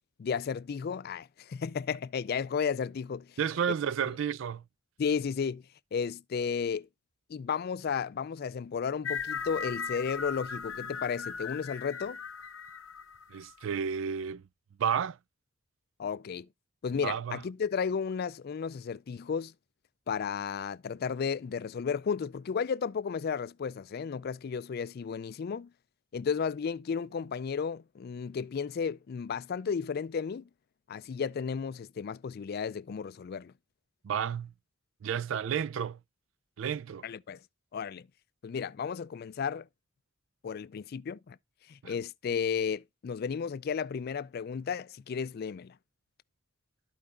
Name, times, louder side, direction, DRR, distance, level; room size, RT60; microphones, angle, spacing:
voice 1, 0.2-3.3 5.0-5.6 5.9-6.9 7.3-12.2 16.0-16.5 16.8-19.5 20.1-25.7 26.1-30.4 30.9-33.5 37.0-37.4 37.7-38.1 38.4-39.7 40.4-41.4 41.7-45.7, left 6 dB, 50° left, 0.3 m, -33 dB
voice 2, 3.4-4.6 13.3-14.4 14.8-15.2 17.0-17.4 34.0-34.5 35.0-36.0 36.6-37.1 41.8-41.9, right 7 dB, 65° right, 0.3 m, -31 dB
sound 1, 9.0-13.8, left 6 dB, 75° left, 0.8 m, -38 dB
13.5 x 4.8 x 2.4 m
head